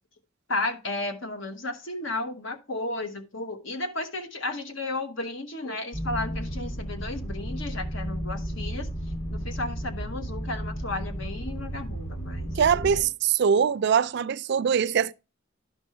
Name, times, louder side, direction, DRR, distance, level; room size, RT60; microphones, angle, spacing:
voice 1, 0.5-8.9 9.3-12.5 12.9-13.1, left 2 dB, 70° left, 1.2 m, -33 dB
sound 1, 5.9-13.0, equal, 25° left, 2.3 m, -33 dB
voice 2, 12.6-15.1, right 7 dB, 55° right, 0.4 m, -23 dB
11.5 x 5.3 x 3.2 m
head